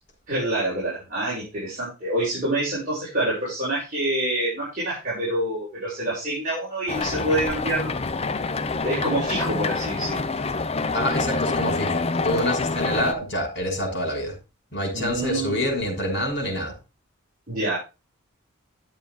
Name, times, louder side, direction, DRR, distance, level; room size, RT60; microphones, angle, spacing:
voice 1, 0.3-8.0 8.8-10.3 14.9-15.7 17.5-17.8, right 1 dB, 40° right, -9 dB, 6.5 m, -27 dB
sound 1, 6.9-13.1, left 3 dB, 30° left, 0.6 m, -26 dB
voice 2, 10.9-14.3 14.7-16.7, equal, 50° left, 1 dB, 6.1 m, -27 dB
12.0 x 7.8 x 3.7 m, 0.29 s
head